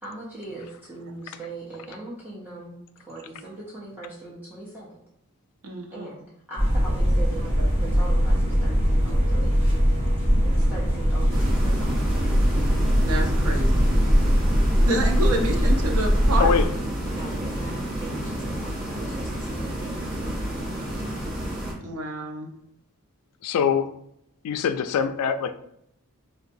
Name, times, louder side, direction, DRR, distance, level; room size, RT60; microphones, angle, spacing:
voice 1, 0.0-5.0 5.9-7.5 7.8-9.6 10.4-11.9 12.5-12.6 17.1-20.3, right 2 dB, 10° right, -7 dB, 0.5 m, -40 dB
voice 2, 5.6-6.1 7.6-7.7 13.0-13.9 14.9-16.5 21.8-22.5, right 1 dB, 70° right, 1 dB, 0.6 m, -28 dB
sound 1, 6.6-16.7, equal, 25° right, 1.0 m, -21 dB
sound 2, 11.3-21.7, right 1 dB, 45° right, 1.1 m, -31 dB
voice 3, 23.4-23.9 24.4-25.5, left 7 dB, 80° left, 13 dB, 0.3 m, -23 dB
3.8 x 2.2 x 2.6 m, 0.75 s
head